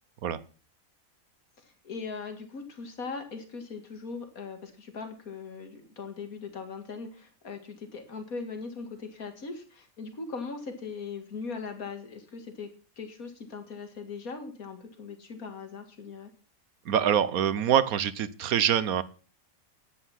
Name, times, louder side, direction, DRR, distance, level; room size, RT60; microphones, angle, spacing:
voice 1, 1.6-12.7 13.0-16.3, left 4 dB, 90° left, 6 dB, 2.4 m, -40 dB
voice 2, 16.8-19.0, right 9 dB, 90° right, 16 dB, 1.4 m, -25 dB
10.0 x 10.0 x 5.8 m, 0.39 s
omnidirectional pair, 1.5 m